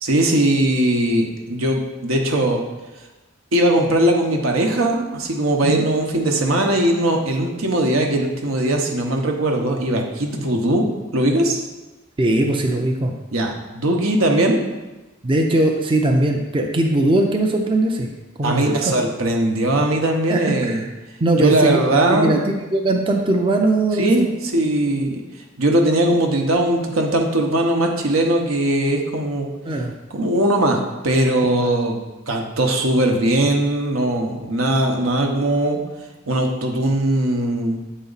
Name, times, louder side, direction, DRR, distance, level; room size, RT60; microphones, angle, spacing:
voice 1, 0.0-2.6 3.5-10.8 11.1-11.6 13.3-14.6 18.4-20.9 21.3-22.3 24.0-25.2 25.6-29.5 30.1-32.0 32.3-35.8 36.3-37.8, right 1 dB, 80° right, 2 dB, 1.0 m, -19 dB
voice 2, 12.2-13.1 15.2-18.1 18.4-18.7 20.3-20.9 21.2-24.3 24.8-24.9 29.7-29.9, right 1 dB, 25° right, 2 dB, 0.5 m, -20 dB
7.9 x 4.1 x 4.0 m, 1.1 s
head